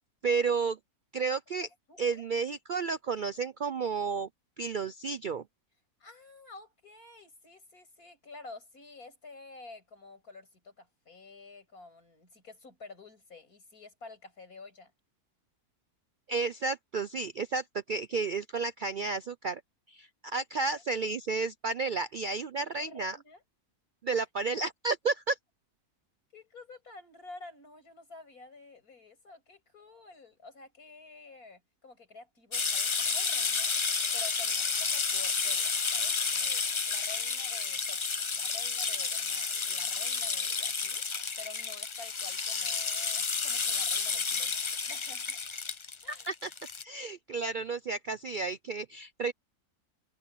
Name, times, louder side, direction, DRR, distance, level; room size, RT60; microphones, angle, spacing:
voice 1, 0.2-0.8 1.1-1.7 2.0-4.3 4.6-5.4 16.3-19.6 19.9-23.2 24.0-25.4 46.1-46.5 46.8-49.3, right 4 dB, 75° right, 0.4 m, -32 dB
voice 2, 1.9-2.2 6.0-14.9 20.7-20.8 22.5-23.4 24.1-24.3 26.3-33.7 34.1-41.0 41.4-45.4 46.0-46.3, left 3 dB, 80° left, 7.4 m, -50 dB
sound 1, 32.5-46.8, left 5 dB, 40° left, 0.4 m, -31 dB
omnidirectional pair, 1.5 m